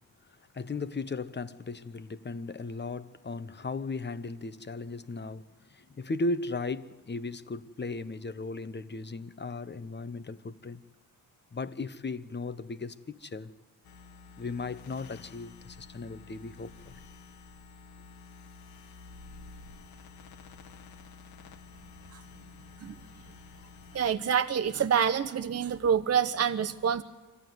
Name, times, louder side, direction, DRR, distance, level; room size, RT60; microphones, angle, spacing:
voice 1, 0.5-10.8 11.5-13.5 14.4-17.0, left 3 dB, 30° left, 1.0 m, -36 dB
sound 1, 13.8-24.2, left 4 dB, 85° left, 1.8 m, -50 dB
voice 2, 23.9-27.0, right 7 dB, 45° right, 0.9 m, -27 dB
25.0 x 14.5 x 9.4 m
cardioid pair, 85°, 36 cm